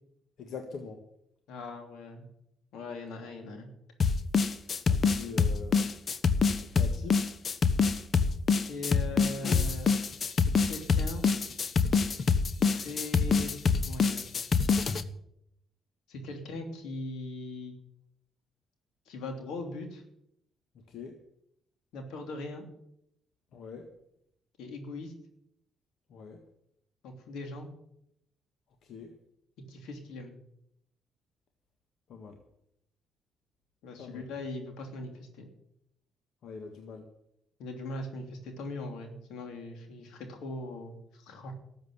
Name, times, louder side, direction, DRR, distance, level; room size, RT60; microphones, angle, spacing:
voice 1, 0.4-1.0 4.9-5.9 6.5-7.2 20.9-21.2 23.5-23.9 26.1-26.4 28.8-29.1 32.1-32.4 34.0-34.2 36.4-37.1, left 5 dB, 70° left, 5 dB, 1.7 m, -43 dB
voice 2, 1.5-2.3 2.7-3.7 8.7-9.9 10.2-11.2 12.7-13.5 13.9-14.3 16.1-17.7 19.1-20.0 21.9-22.6 24.6-25.1 27.0-27.7 29.7-30.3 33.8-35.5 37.6-41.5, left 2 dB, 85° left, 5 dB, 3.0 m, -40 dB
sound 1, 4.0-15.0, left 5 dB, 45° left, 1.0 m, -25 dB
13.5 x 7.9 x 9.7 m, 0.76 s
cardioid pair, 90°, 0 cm